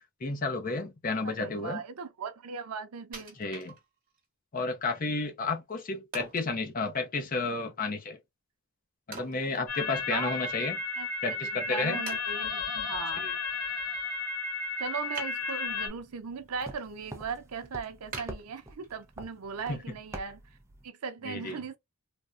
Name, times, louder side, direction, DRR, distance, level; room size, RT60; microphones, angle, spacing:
voice 1, 0.0-1.8 3.4-3.8 4.5-8.2 9.1-10.8 11.2-12.0 13.2-13.3 19.7-19.9 21.2-21.6, left 3 dB, 40° left, 0.6 m, -32 dB
voice 2, 1.2-3.4 10.1-10.5 11.0-11.1 11.7-13.3 14.8-20.4 20.8-21.8, right 5 dB, 85° right, 0.6 m, -38 dB
Wood, 3.1-4.2 4.7-4.8 6.1-6.5 9.1-10.2 10.6-10.7 11.3-11.4 12.1-12.7 15.1-15.9 16.4-16.8 17.2-17.3 18.1-19.1 19.6-19.7, right 4 dB, 40° right, 1.1 m, -44 dB
sound 1, 9.7-15.9, left 4 dB, 65° left, 1.5 m, -33 dB
sound 2, 15.7-20.9, right 1 dB, 10° right, 0.5 m, -47 dB
3.5 x 2.1 x 2.4 m
head